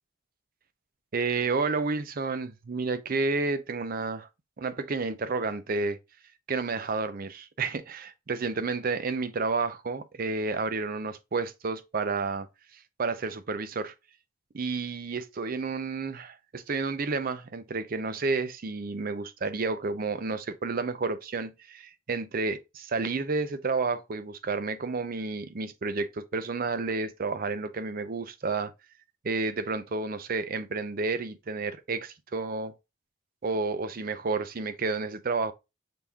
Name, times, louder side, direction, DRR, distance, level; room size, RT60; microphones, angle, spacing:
voice 1, 1.1-4.3 4.6-6.0 6.5-12.5 13.0-13.9 14.5-28.7 29.2-32.7 33.4-35.5, right 4 dB, 45° right, 0.5 m, -30 dB
5.9 x 3.5 x 2.3 m
head